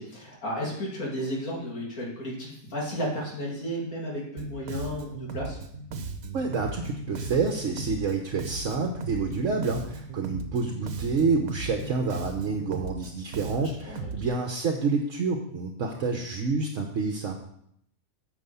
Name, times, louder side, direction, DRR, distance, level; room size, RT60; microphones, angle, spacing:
voice 1, 0.0-5.6 13.5-14.1, equal, 80° left, -3 dB, 3.2 m, -33 dB
Bass guitar, 4.4-14.3, right 3 dB, 80° right, 1.4 m, -37 dB
voice 2, 6.3-17.3, right 4 dB, 60° right, 3 dB, 1.3 m, -28 dB
9.3 x 5.7 x 6.9 m, 0.70 s
omnidirectional pair, 1.5 m